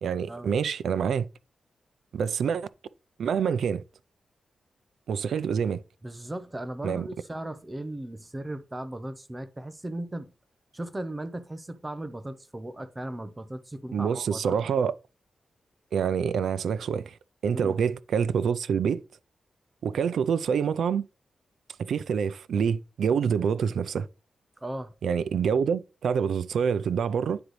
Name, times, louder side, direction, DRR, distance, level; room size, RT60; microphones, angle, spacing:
voice 1, 0.0-1.3 2.1-2.7 3.2-3.8 5.1-5.8 6.8-7.1 13.9-14.9 15.9-17.2 17.4-19.0 19.8-21.0 21.8-24.1 25.0-27.4, right 7 dB, 80° right, 0.4 m, -26 dB
voice 2, 6.0-10.3 10.7-14.6 17.5-17.7 24.6-24.9, right 1 dB, 15° right, 0.6 m, -37 dB
9.6 x 3.9 x 3.1 m
wide cardioid pair, 180°, 0 cm